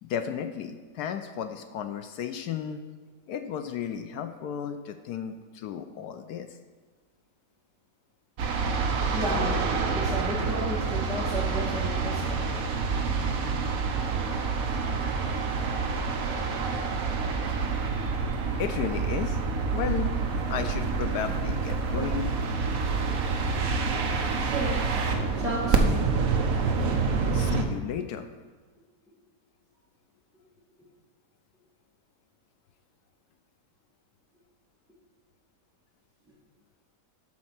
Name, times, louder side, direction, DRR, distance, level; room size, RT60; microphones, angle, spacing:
voice 1, 0.0-2.8 3.3-6.5 17.5-17.7 18.6-19.4 19.7-22.3 27.3-28.3, left 8 dB, 75° left, 8 dB, 1.1 m, -34 dB
sound 1, 8.4-27.6, right 4 dB, 60° right, 1.2 m, -27 dB
voice 2, 9.1-12.6 24.3-24.9 25.3-26.0 26.5-27.5, equal, ahead, -8 dB, 1.7 m, -34 dB
12.5 x 4.3 x 5.8 m, 1.4 s
omnidirectional pair, 1.8 m